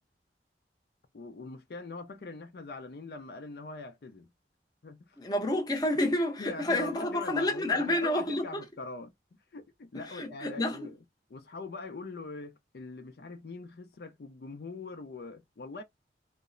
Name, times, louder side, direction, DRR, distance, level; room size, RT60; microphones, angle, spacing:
voice 1, 1.1-4.3 4.8-5.2 6.4-9.1 9.5-11.0 11.3-15.8, left 3 dB, 65° left, 0.5 m, -42 dB
voice 2, 5.2-8.6 9.9-10.9, left 1 dB, 20° left, 0.6 m, -29 dB
2.8 x 2.0 x 2.5 m
head